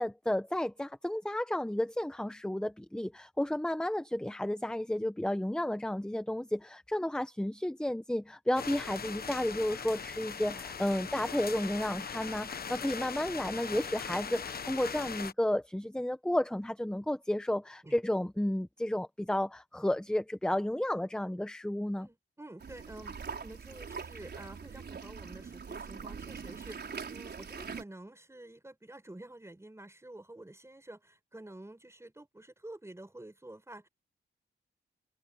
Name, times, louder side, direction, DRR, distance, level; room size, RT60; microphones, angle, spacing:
voice 1, 0.0-22.1, left 1 dB, 5° left, 0.9 m, -32 dB
sound 1, 8.5-15.3, left 6 dB, 50° left, 1.1 m, -40 dB
voice 2, 22.0-33.9, right 1 dB, 15° right, 6.1 m, -49 dB
sound 2, 22.6-27.8, right 5 dB, 60° right, 4.8 m, -43 dB
cardioid pair, 95°, 20 cm